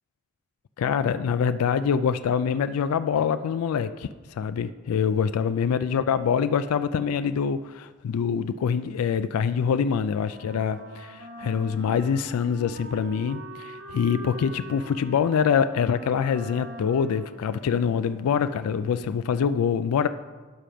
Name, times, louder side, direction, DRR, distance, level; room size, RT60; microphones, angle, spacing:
voice 1, 0.8-20.1, left 7 dB, 80° left, 13 dB, 0.3 m, -25 dB
Wind instrument woodwind instrument, 10.2-18.5, equal, 55° right, 1.8 m, -43 dB
12.5 x 5.0 x 5.7 m, 1.4 s
head